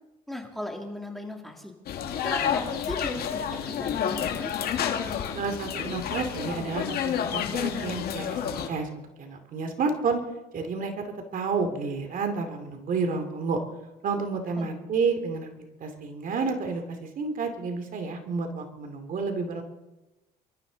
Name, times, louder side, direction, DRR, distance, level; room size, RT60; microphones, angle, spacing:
voice 1, 0.3-1.7 2.2-4.5 14.6-14.7, left 1 dB, ahead, 2 dB, 2.7 m, -37 dB
sound 1, 1.9-8.7, left 8 dB, 65° left, 2.0 m, -30 dB
voice 2, 5.3-8.9 9.2-10.2 10.5-13.6 14.0-19.6, right 4 dB, 55° right, 6 dB, 2.5 m, -30 dB
26.5 x 13.5 x 4.0 m, 1.0 s
cardioid pair, 110°, 17 cm